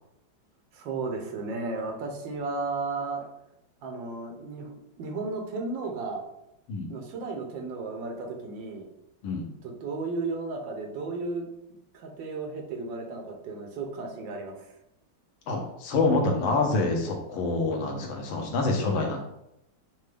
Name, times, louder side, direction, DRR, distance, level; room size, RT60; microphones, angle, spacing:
voice 1, 0.7-3.2 3.8-4.7 5.0-6.2 6.9-8.9 9.6-11.5 11.9-14.6, right 3 dB, 80° right, 2 dB, 1.5 m, -34 dB
voice 2, 15.5-19.2, left 3 dB, 85° left, 1 dB, 1.6 m, -26 dB
6.3 x 2.3 x 3.3 m, 0.84 s
omnidirectional pair, 2.1 m